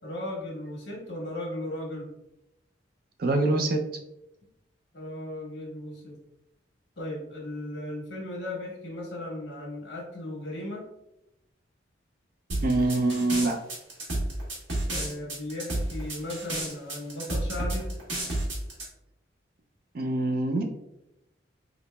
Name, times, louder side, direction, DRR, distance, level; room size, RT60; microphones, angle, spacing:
voice 1, 0.0-2.1 4.9-6.2 7.0-10.8 14.9-17.9, left 1 dB, 60° left, -3 dB, 1.3 m, -36 dB
voice 2, 3.2-3.8 12.6-13.6 19.9-20.6, right 2 dB, 50° right, 4 dB, 0.4 m, -24 dB
sound 1, 12.5-18.8, right 1 dB, 70° right, 1.2 m, -30 dB
3.8 x 2.9 x 2.2 m, 0.87 s
head